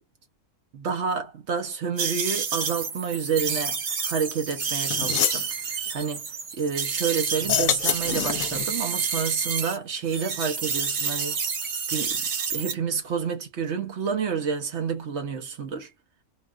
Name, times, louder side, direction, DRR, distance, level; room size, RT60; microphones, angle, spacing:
voice 1, 0.7-6.3 6.6-11.4 11.9-15.9, right 6 dB, 60° right, 0.9 m, -29 dB
sound 1, 2.0-9.8 10.1-12.7, right 6 dB, 85° right, 1.5 m, -29 dB
sound 2, 4.5-4.6 4.9-5.5 7.4-8.7, left 9 dB, 70° left, 1.0 m, -26 dB
3.7 x 2.3 x 2.3 m
omnidirectional pair, 1.5 m